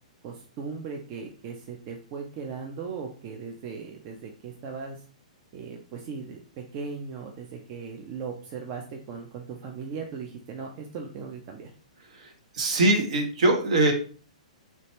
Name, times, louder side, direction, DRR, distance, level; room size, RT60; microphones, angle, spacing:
voice 1, 0.2-5.0 5.5-11.7, right 5 dB, 40° right, 2 dB, 0.5 m, -38 dB
voice 2, 12.5-13.9, right 2 dB, 60° right, 4 dB, 0.9 m, -22 dB
3.4 x 2.7 x 3.0 m, 0.39 s
hypercardioid pair, 120°, 4 cm